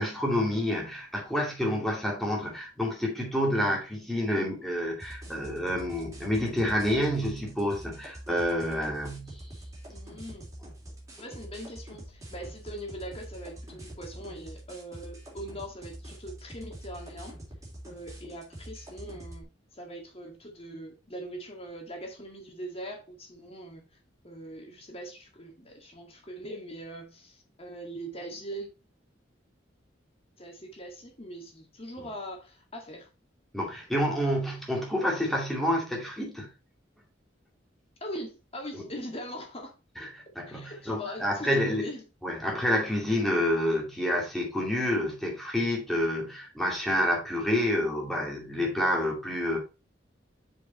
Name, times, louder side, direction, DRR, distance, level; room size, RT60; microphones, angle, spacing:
voice 1, 0.0-9.4 33.5-36.5 38.7-38.8 40.0-40.1 40.4-41.9 42.2-49.6, left 1 dB, ahead, 2.5 m, -28 dB
sound 1, 5.0-19.4, right 1 dB, 20° right, 3.3 m, -45 dB
voice 2, 9.9-10.5 11.2-17.4 17.8-24.0 24.2-28.7 30.4-33.1 38.0-39.8 40.5-42.0, equal, 35° left, 2.0 m, -41 dB
7.1 x 4.8 x 4.2 m
head